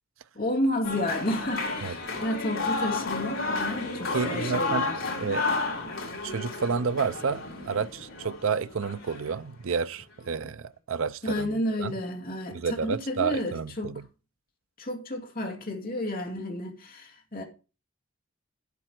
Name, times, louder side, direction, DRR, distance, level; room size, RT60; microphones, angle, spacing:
voice 1, 0.4-5.0 11.2-14.0 14.8-17.4, left 1 dB, 40° left, 2.3 m, -31 dB
sound 1, 0.8-9.4, left 3 dB, 65° left, 3.7 m, -32 dB
voice 2, 4.1-4.9 5.2-5.5 6.2-11.9 12.5-14.0, right 5 dB, 70° right, 0.5 m, -30 dB
10.0 x 8.2 x 4.6 m
head